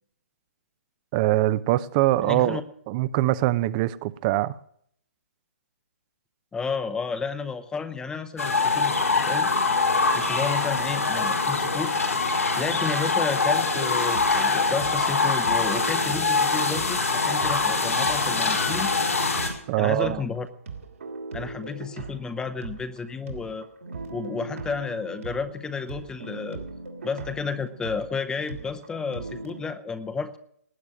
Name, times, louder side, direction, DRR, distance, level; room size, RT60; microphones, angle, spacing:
voice 1, 1.1-2.6 2.9-4.6 19.7-20.2, right 16 dB, 30° right, 0.6 m, -23 dB
voice 2, 2.2-2.6 6.5-9.5 10.1-11.9 12.6-18.9 19.8-20.5 21.3-23.7 24.1-26.6 27.0-30.4, left 5 dB, 10° left, 0.8 m, -32 dB
sound 1, 8.4-19.5, left 4 dB, 90° left, 4.6 m, -24 dB
sound 2, 13.7-17.8 18.0-29.6, right 4 dB, 70° right, 3.1 m, -39 dB
19.0 x 9.5 x 6.3 m
hypercardioid pair, 135°, 8 cm